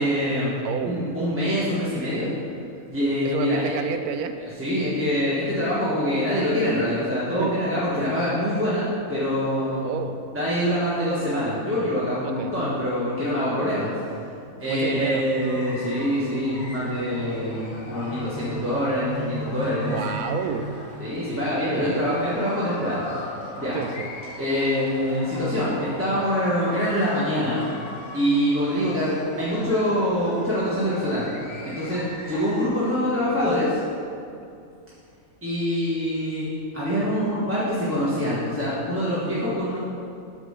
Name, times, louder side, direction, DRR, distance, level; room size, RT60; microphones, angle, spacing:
voice 1, 0.0-0.6 0.9-2.3 2.9-3.8 4.6-9.8 10.3-13.9 14.6-20.0 21.0-23.0 23.6-23.8 24.4-27.6 28.1-31.3 31.6-33.8 35.4-36.5 36.7-39.8, equal, 10° right, -10 dB, 1.3 m, -25 dB
voice 2, 0.6-1.1 3.2-4.4 7.4-7.6 9.8-10.2 12.2-12.5 14.7-15.2 19.9-20.7 21.7-22.1 23.7-24.1 29.9-30.0, right 7 dB, 90° right, 8 dB, 1.1 m, -30 dB
sound 1, 13.0-21.3, right 1 dB, 30° left, 1.6 m, -39 dB
sound 2, 15.4-32.7, left 2 dB, 50° left, 1.2 m, -40 dB
8.9 x 3.8 x 6.5 m, 2.5 s
omnidirectional pair, 1.5 m